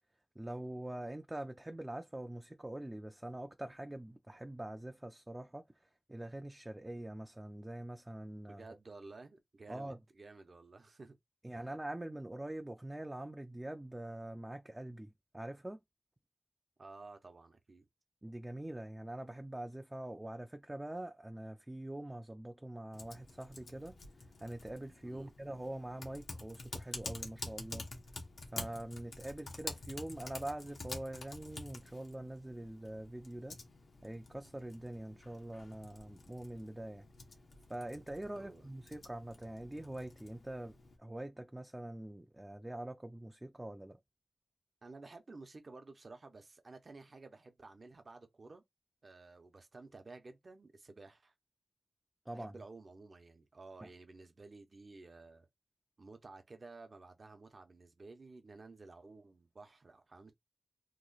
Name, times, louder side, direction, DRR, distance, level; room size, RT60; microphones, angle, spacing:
voice 1, 0.4-5.7 6.1-8.6 9.7-10.0 11.4-15.8 18.2-24.0 24.4-27.9 28.5-33.6 34.0-37.1 37.7-44.0 52.3-52.6 53.8-53.9, right 1 dB, 20° right, 0.4 m, -44 dB
voice 2, 8.5-11.2 11.5-11.8 16.8-17.9 25.0-25.3 38.3-38.7 44.8-48.6 49.0-51.3 52.3-55.5 56.0-60.3, right 3 dB, 55° right, 0.7 m, -53 dB
Typing, 22.9-41.0, left 3 dB, 85° left, 0.9 m, -49 dB
3.0 x 2.2 x 3.9 m
wide cardioid pair, 70°, 0 cm